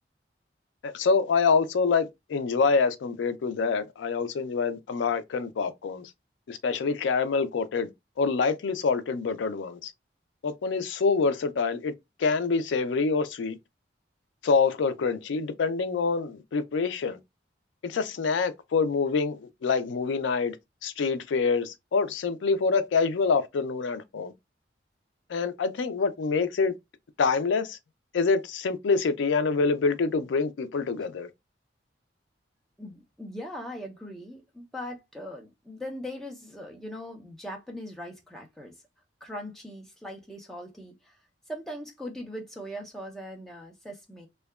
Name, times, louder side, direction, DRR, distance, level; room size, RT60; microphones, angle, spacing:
voice 1, 0.8-6.1 6.5-7.9 8.2-9.9 10.4-11.9 12.2-13.6 14.4-17.2 17.8-20.6 20.8-24.3 25.3-26.7 27.2-27.8 28.1-31.3, left 4 dB, 80° left, 0.4 m, -26 dB
voice 2, 32.8-38.8 39.2-41.2 41.5-44.3, equal, ahead, 0.5 m, -40 dB
2.7 x 2.2 x 2.2 m
head